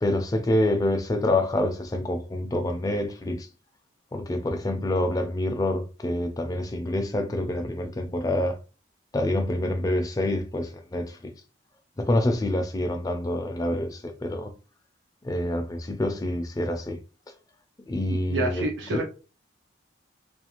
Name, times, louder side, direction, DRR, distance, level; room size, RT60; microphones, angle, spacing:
voice 1, 0.0-3.5 4.1-8.6 9.1-11.3 12.0-14.5 15.2-17.0 17.9-19.0, left 1 dB, 20° left, 0.3 m, -27 dB
voice 2, 18.1-19.1, right 2 dB, 70° right, 0.5 m, -29 dB
2.4 x 2.3 x 2.9 m
head